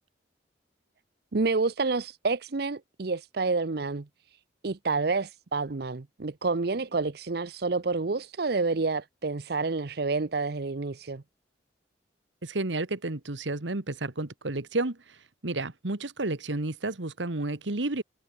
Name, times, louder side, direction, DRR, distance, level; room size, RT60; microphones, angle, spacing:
voice 1, 1.3-4.1 4.6-11.2, right 3 dB, 60° right, 0.7 m, -29 dB
voice 2, 12.4-15.0 15.4-18.0, right 2 dB, 90° right, 1.7 m, -31 dB
head